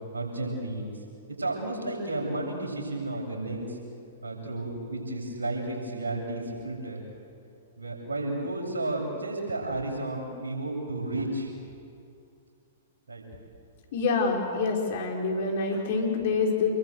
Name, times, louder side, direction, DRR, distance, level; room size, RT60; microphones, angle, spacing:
voice 1, 0.1-0.9 1.3-3.8 4.2-7.0 7.8-11.5 13.1-13.3, right 2 dB, 80° right, -1 dB, 7.7 m, -32 dB
voice 2, 13.9-16.7, left 4 dB, 55° left, 1 dB, 5.2 m, -26 dB
28.0 x 23.0 x 8.1 m, 2.5 s
figure-of-eight pair, 110°, 0 cm